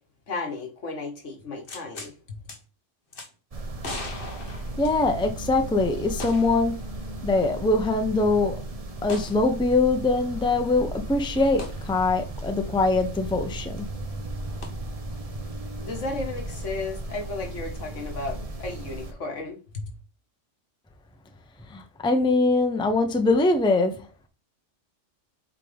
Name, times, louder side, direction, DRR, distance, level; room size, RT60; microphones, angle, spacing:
voice 1, 0.3-2.4 15.8-19.9, left 3 dB, 80° left, 1.9 m, -34 dB
sound 1, 1.7-2.1 2.5-2.6 3.1-3.3 3.8-5.3 6.2-6.6 7.0-7.1 9.1-9.4 11.6-11.8 14.6-14.7, left 2 dB, 50° left, 1.3 m, -38 dB
sound 2, 3.5-19.1, right 2 dB, 35° right, 0.8 m, -36 dB
voice 2, 4.8-6.8 7.2-8.6 9.0-13.9 21.7-24.1, left 3 dB, 5° left, 0.6 m, -23 dB
8.1 x 3.8 x 3.4 m
omnidirectional pair, 1.3 m